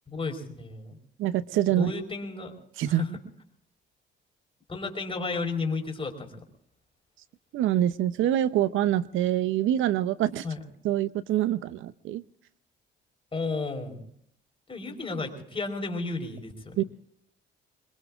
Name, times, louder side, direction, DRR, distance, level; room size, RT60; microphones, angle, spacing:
voice 1, 0.1-1.0 1.8-2.5 2.8-3.1 4.7-6.4 10.2-10.6 13.3-14.0 14.7-16.9, left 3 dB, 25° left, 4 dB, 4.6 m, -33 dB
voice 2, 1.2-1.9 2.8-3.0 7.5-10.4 10.8-12.2 16.8-16.9, right 12 dB, 80° right, 15 dB, 0.7 m, -25 dB
26.5 x 22.0 x 2.5 m, 0.71 s
cardioid pair, 90°, 20 cm